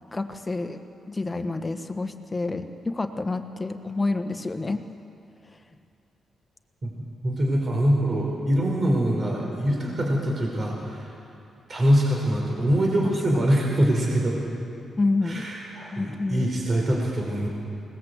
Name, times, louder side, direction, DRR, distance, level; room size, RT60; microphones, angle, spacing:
voice 1, 0.1-0.8 1.1-4.8 13.0-13.1 15.0-15.4 15.9-16.5, left 3 dB, 20° left, 7 dB, 1.4 m, -28 dB
voice 2, 6.8-11.1 11.7-14.4 15.2-17.5, equal, 45° right, -1 dB, 4.8 m, -24 dB
21.0 x 19.0 x 8.1 m, 2.6 s
cardioid pair, 80°, 0 cm